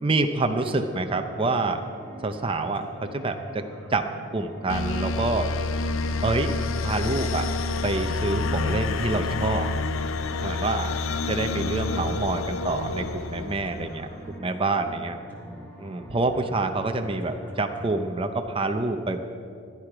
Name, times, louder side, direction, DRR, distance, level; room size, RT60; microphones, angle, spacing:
voice 1, 0.0-1.8 2.2-3.6 3.9-4.1 4.3-5.5 6.2-6.5 6.8-7.5 7.8-9.7 10.4-10.9 11.3-15.2 15.8-19.2, right 3 dB, 25° right, 6 dB, 0.6 m, -27 dB
sound 1, 0.6-18.0, equal, 10° left, 1.7 m, -43 dB
sound 2, 4.7-14.1, left 3 dB, 80° left, 0.5 m, -28 dB
15.0 x 10.5 x 4.9 m, 2.4 s
head